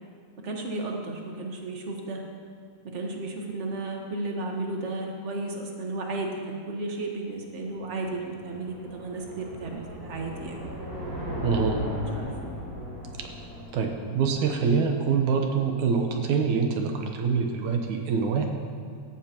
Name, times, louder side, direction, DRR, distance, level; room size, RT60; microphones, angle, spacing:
voice 1, 0.4-2.2 2.8-10.6 12.1-12.3, right 2 dB, 50° right, 1 dB, 0.8 m, -33 dB
sound 1, 7.6-15.0, equal, 35° right, 4.1 m, -37 dB
voice 2, 11.4-11.8 13.2-13.3 13.7-18.5, right 5 dB, 80° right, 3 dB, 2.4 m, -25 dB
17.5 x 14.0 x 3.0 m, 2.3 s
omnidirectional pair, 3.4 m